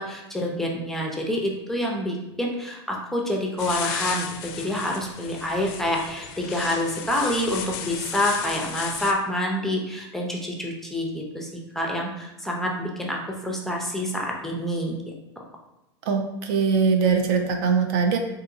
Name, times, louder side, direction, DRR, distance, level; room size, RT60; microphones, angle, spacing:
voice 1, 0.0-11.5 11.7-15.0, left 1 dB, ahead, -1 dB, 0.6 m, -27 dB
sound 1, 3.6-9.1, left 8 dB, 50° left, 0.4 m, -34 dB
voice 2, 16.1-18.2, right 5 dB, 55° right, 4 dB, 0.5 m, -21 dB
3.6 x 2.8 x 2.5 m, 0.94 s
hypercardioid pair, 95°, 15 cm